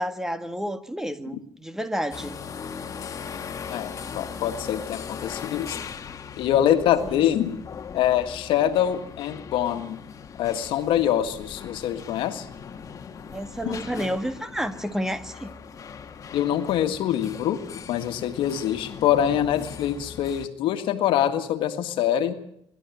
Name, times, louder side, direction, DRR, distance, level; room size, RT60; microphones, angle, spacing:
voice 1, 0.0-2.4 7.0-7.3 13.3-15.5, equal, 5° right, 10 dB, 1.8 m, -30 dB
sound 1, 2.1-20.5, left 6 dB, 40° left, 1.9 m, -39 dB
voice 2, 3.7-5.8 6.4-7.6 7.9-10.0 10.4-12.5 13.6-13.8 16.3-17.6 17.9-22.3, left 10 dB, 70° left, 7 dB, 1.8 m, -24 dB
23.5 x 13.0 x 9.3 m, 0.73 s
supercardioid pair, 90°, 9 cm